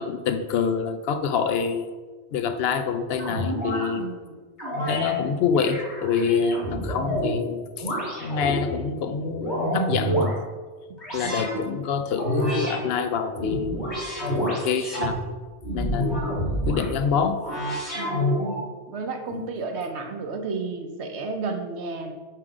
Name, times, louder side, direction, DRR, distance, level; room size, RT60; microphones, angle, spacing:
voice 1, 0.0-1.9 2.3-4.1 4.9-7.6 8.2-10.4 11.1-13.9 14.4-15.2 15.7-16.1 16.6-17.4 19.3-19.5, left 6 dB, 65° left, 9 dB, 0.8 m, -26 dB
sound 1, 3.2-3.9 4.6-5.1 5.5-7.4 7.8-8.7 9.2-10.3 11.0-11.6 12.1-12.8 13.3-15.1 15.6-16.9 17.4-18.6, equal, 40° left, 2.3 m, -28 dB
voice 2, 4.0-4.3 10.9-11.5 16.1-16.3 17.9-18.4 18.9-22.1, right 4 dB, 70° right, 5 dB, 1.0 m, -33 dB
7.7 x 3.8 x 4.9 m, 1.4 s
omnidirectional pair, 1.2 m